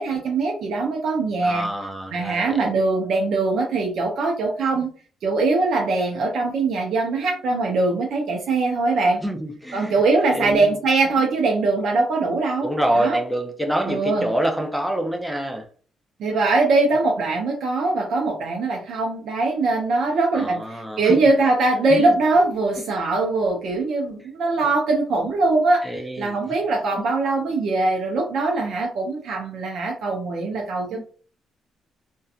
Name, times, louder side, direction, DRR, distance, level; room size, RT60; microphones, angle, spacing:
voice 1, 0.0-1.7 2.1-4.9 5.2-9.2 9.7-12.7 12.9-13.2 13.9-14.3 16.2-31.0, right 3 dB, 70° right, 0.5 m, -22 dB
voice 2, 1.4-2.7 9.2-9.9 10.3-10.7 12.6-15.6 20.3-21.2 21.9-22.1 25.8-26.3 30.9-31.0, right 1 dB, ahead, 0.5 m, -26 dB
2.6 x 2.2 x 2.3 m
cardioid pair, 90°, 0 cm